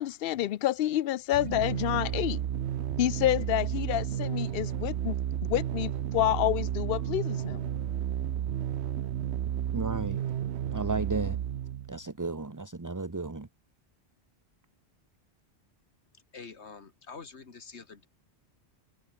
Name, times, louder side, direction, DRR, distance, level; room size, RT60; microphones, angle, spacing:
voice 1, 0.0-2.4 3.0-5.1 5.5-7.7, left 13 dB, 65° left, 0.7 m, -28 dB
sound 1, 1.3-12.0, right 10 dB, 80° right, 1.0 m, -32 dB
voice 2, 9.7-10.2 10.7-11.4 11.9-13.5, right 3 dB, 20° right, 0.9 m, -33 dB
voice 3, 16.1-18.1, left 5 dB, 85° left, 2.1 m, -46 dB
omnidirectional pair, 1.1 m